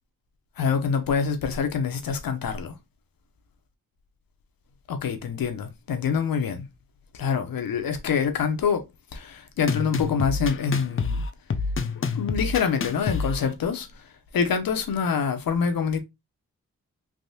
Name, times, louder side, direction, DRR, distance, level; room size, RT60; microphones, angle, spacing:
voice 1, 0.6-2.7 4.9-6.7 7.1-8.8 9.1-11.2 12.1-13.9 14.3-16.0, left 6 dB, 80° left, 0.7 m, -25 dB
sound 1, 9.7-13.5, left 4 dB, 40° left, 0.5 m, -28 dB
3.4 x 2.6 x 2.7 m
cardioid pair, 60°, 34 cm